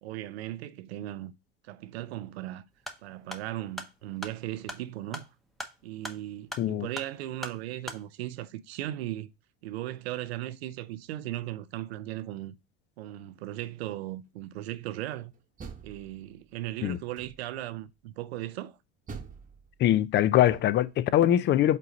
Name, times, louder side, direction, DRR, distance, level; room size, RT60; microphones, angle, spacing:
voice 1, 0.0-1.3 1.6-2.6 3.0-5.3 5.8-9.3 9.6-12.5 13.0-15.3 15.8-18.8, right 14 dB, 85° right, 0.6 m, -37 dB
sound 1, 2.7-8.0, equal, ahead, 0.9 m, -42 dB
voice 2, 6.6-6.9 16.8-17.0 19.8-21.8, left 12 dB, 35° left, 0.5 m, -23 dB
Door, 15.3-16.6 17.1-17.7 19.1-21.0, right 5 dB, 25° right, 1.0 m, -46 dB
5.3 x 3.9 x 5.0 m
supercardioid pair, 100°, 31 cm